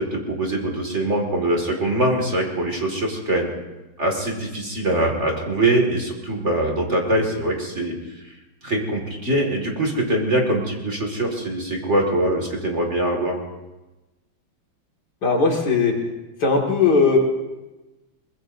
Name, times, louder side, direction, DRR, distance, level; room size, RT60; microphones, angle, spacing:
voice 1, 0.0-3.5 4.0-8.0 8.6-13.4, right 1 dB, 35° right, 1 dB, 2.3 m, -23 dB
voice 2, 15.2-15.9 16.4-17.2, left 4 dB, 55° left, 1 dB, 2.6 m, -18 dB
23.0 x 20.5 x 2.7 m, 1.1 s
omnidirectional pair, 2.1 m